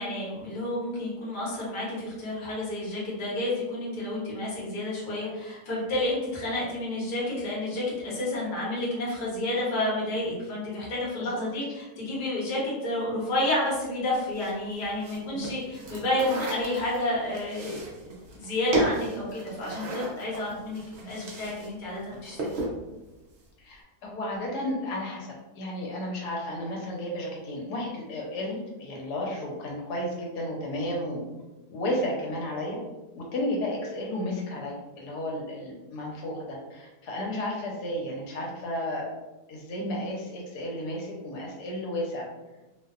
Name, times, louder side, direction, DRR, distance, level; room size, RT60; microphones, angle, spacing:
voice 1, 0.0-22.6, left 1 dB, 40° left, -6 dB, 0.8 m, -30 dB
sound 1, 14.3-21.7 22.0-22.8, right 1 dB, 65° right, 0.7 m, -34 dB
voice 2, 23.6-31.2 31.7-32.8 33.1-39.1 39.5-42.3, left 1 dB, 85° left, -1 dB, 1.2 m, -33 dB
2.7 x 2.0 x 2.3 m, 1.1 s
omnidirectional pair, 1.7 m